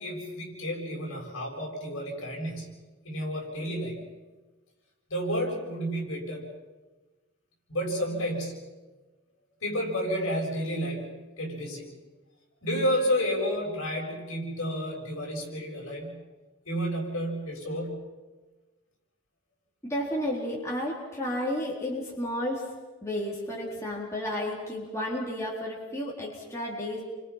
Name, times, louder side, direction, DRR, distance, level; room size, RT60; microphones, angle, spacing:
voice 1, 0.0-2.8 3.0-4.1 5.1-6.5 7.7-8.6 9.6-11.9 12.6-16.2 16.7-18.1, equal, 65° left, -1 dB, 7.3 m, -31 dB
voice 2, 19.8-22.7 23.0-27.0, left 1 dB, 15° left, -5 dB, 4.1 m, -32 dB
30.0 x 25.0 x 5.8 m, 1.2 s
head